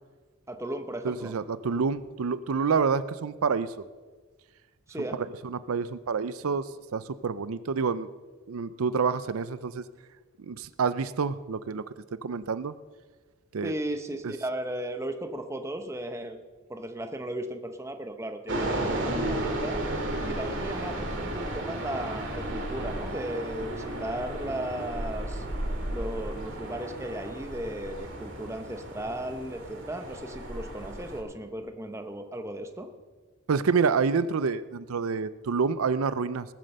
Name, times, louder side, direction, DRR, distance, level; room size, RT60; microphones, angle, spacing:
voice 1, 0.5-1.3 4.9-5.2 13.6-16.4 16.7-19.8 20.2-25.4 25.9-32.9, right 1 dB, 15° right, 6 dB, 0.9 m, -36 dB
voice 2, 1.0-3.7 5.4-8.1 8.5-9.8 10.4-11.8 12.2-12.7 13.5-13.7 33.5-36.5, right 5 dB, 85° right, 15 dB, 0.5 m, -28 dB
sound 1, 18.5-31.2, right 1 dB, 60° right, 2.4 m, -33 dB
19.5 x 7.6 x 6.7 m, 1.4 s
head